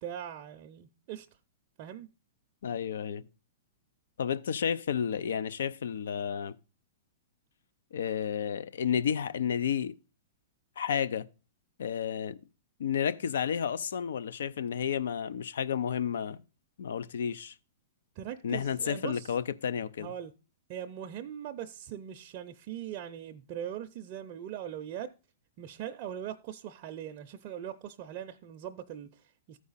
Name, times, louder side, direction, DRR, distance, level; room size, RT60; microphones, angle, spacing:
voice 1, 0.0-1.3 1.8-2.1 18.2-19.3 20.0-20.3 20.7-25.1 25.6-29.6, right 10 dB, 45° right, 0.5 m, -41 dB
voice 2, 2.6-3.3 4.2-6.6 7.9-10.0 10.8-11.3 11.8-12.4 12.8-16.4 16.8-17.5 18.4-20.1, left 8 dB, 75° left, 0.5 m, -31 dB
14.0 x 4.8 x 4.1 m
hypercardioid pair, 130°, 0 cm